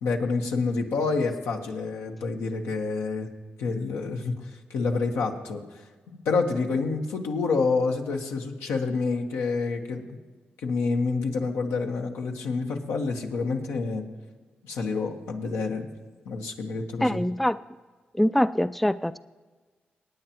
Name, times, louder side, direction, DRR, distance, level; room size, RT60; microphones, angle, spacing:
voice 1, 0.0-3.3 3.6-5.6 6.1-10.0 10.6-14.1 14.6-15.9 16.2-17.2, left 4 dB, 85° left, 2 dB, 1.1 m, -28 dB
voice 2, 17.0-17.6 18.1-19.2, left 1 dB, 5° left, 15 dB, 0.3 m, -24 dB
23.0 x 9.3 x 3.0 m, 1.4 s
supercardioid pair, 40°, 4 cm